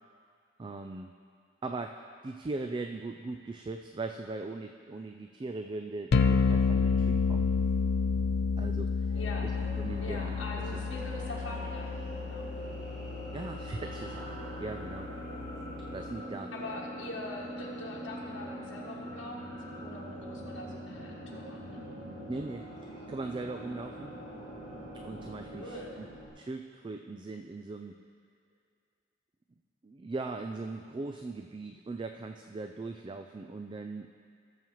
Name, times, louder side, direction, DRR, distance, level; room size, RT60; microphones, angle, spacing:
voice 1, 0.6-1.1 1.6-7.5 8.6-9.5 9.8-10.8 13.3-15.1 15.9-16.5 22.3-24.1 24.9-26.1 26.4-28.0 29.8-34.1, right 3 dB, 25° right, 5 dB, 0.3 m, -40 dB
sound 1, 6.1-16.1, left 5 dB, 55° left, 0.4 m, -30 dB
sound 2, 9.0-26.3, right 1 dB, 60° right, 1.8 m, -43 dB
voice 2, 9.1-9.5 10.0-12.5 16.5-21.9 25.5-26.1, left 2 dB, 70° left, -4 dB, 1.5 m, -43 dB
17.5 x 7.2 x 3.1 m, 2.2 s
head